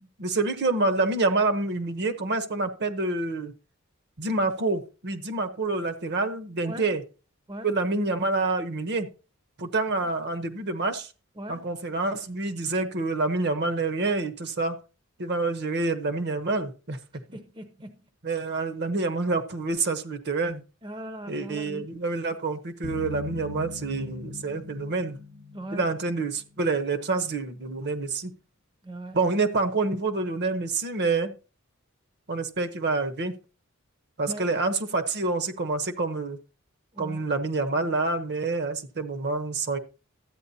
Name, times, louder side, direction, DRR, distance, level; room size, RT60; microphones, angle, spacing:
voice 1, 0.2-3.5 4.2-7.0 7.6-9.1 9.6-11.1 11.5-14.8 15.2-17.0 18.2-20.6 21.3-25.2 25.7-28.3 29.1-31.3 32.3-33.3 34.2-36.4 37.0-39.8, right 3 dB, 50° right, 0.9 m, -27 dB
voice 2, 11.4-11.7 17.3-18.0 20.8-21.9 25.5-25.9 28.8-29.2 34.3-34.5 36.9-37.3, right 1 dB, 20° right, 0.6 m, -39 dB
sound 1, 22.8-26.6, left 6 dB, 70° right, 2.1 m, -40 dB
13.0 x 8.7 x 2.8 m
head